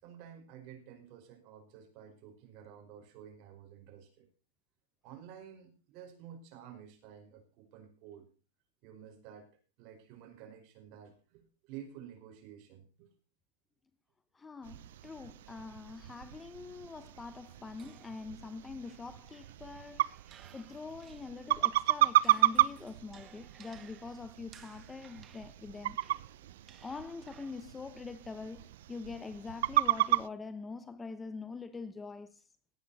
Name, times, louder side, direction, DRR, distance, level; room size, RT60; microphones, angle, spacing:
voice 1, 0.0-4.3 5.0-8.3 8.8-9.5 9.8-13.1, right 9 dB, 45° right, 5.1 m, -51 dB
voice 2, 14.3-20.0 20.5-26.0 26.8-32.4, left 4 dB, 10° left, 1.0 m, -44 dB
sound 1, 14.6-30.3, right 14 dB, 75° right, 0.7 m, -33 dB
sound 2, 17.8-21.6 22.0-27.8, right 8 dB, 25° right, 1.9 m, -60 dB
17.5 x 9.2 x 4.2 m
supercardioid pair, 145°, 0 cm